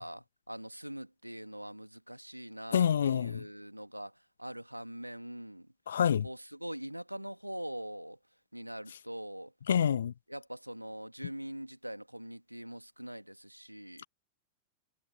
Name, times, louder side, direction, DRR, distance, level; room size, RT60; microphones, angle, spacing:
voice 1, 0.0-5.7 6.2-8.2 8.5-9.5 10.3-14.0, right 1 dB, 90° right, 2.1 m, -43 dB
voice 2, 2.7-3.4 5.9-6.3 9.7-10.1, left 8 dB, 65° left, 1.4 m, -27 dB
figure-of-eight pair, 90°, 0 cm